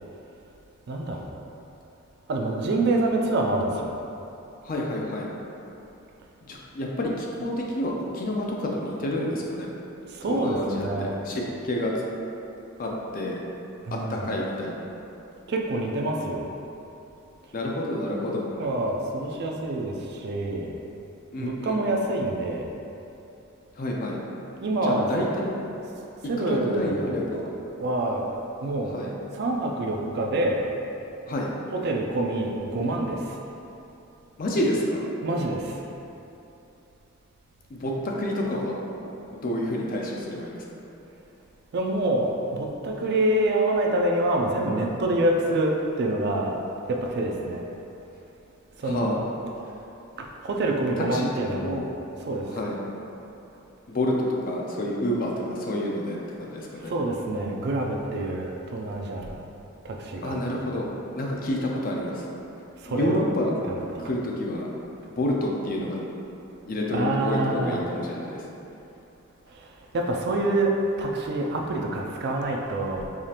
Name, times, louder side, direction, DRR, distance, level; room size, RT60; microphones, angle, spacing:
voice 1, 0.9-1.2 2.3-3.9 10.1-11.1 13.8-14.3 15.5-16.5 18.6-20.7 21.4-22.7 24.6-25.1 26.2-28.3 28.6-29.0 29.3-30.6 31.7-33.2 35.2-35.7 41.7-46.6 46.9-47.6 48.8-49.2 50.4-52.0 52.3-52.5 56.9-59.3 59.8-60.5 62.8-63.2 63.7-64.0 66.9-67.8 69.9-70.7 71.0-73.1, right 2 dB, 50° right, 1 dB, 0.3 m, -26 dB
voice 2, 4.6-5.3 6.4-9.7 10.3-11.9 12.8-13.4 13.9-14.8 17.5-18.5 21.3-21.8 23.8-24.2 24.5-25.5 26.4-27.5 28.9-29.1 31.3-31.5 34.4-35.0 37.7-37.9 38.2-38.7 39.3-40.6 48.8-49.2 51.0-51.9 52.5-52.8 53.9-54.1 54.5-56.9 60.2-60.9 61.1-62.2 62.9-63.5 64.0-64.7 65.1-66.0 66.6-68.4, left 1 dB, 40° left, -2 dB, 0.4 m, -29 dB
4.8 x 2.4 x 2.8 m, 2.9 s
head